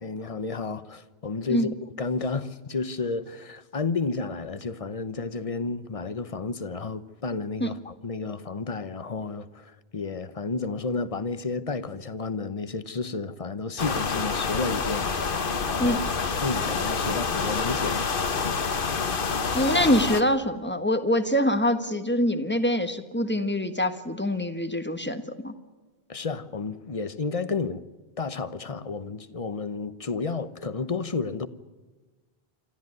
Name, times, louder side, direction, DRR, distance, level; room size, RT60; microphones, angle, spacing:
voice 1, 0.0-15.1 15.7-16.0 16.4-18.1 26.1-27.8 28.2-31.5, left 4 dB, 35° left, 1.0 m, -31 dB
sound 1, 13.8-20.2, left 5 dB, 60° left, 1.3 m, -27 dB
voice 2, 19.5-25.5, equal, 10° left, 1.4 m, -24 dB
27.0 x 13.5 x 9.6 m
omnidirectional pair, 1.0 m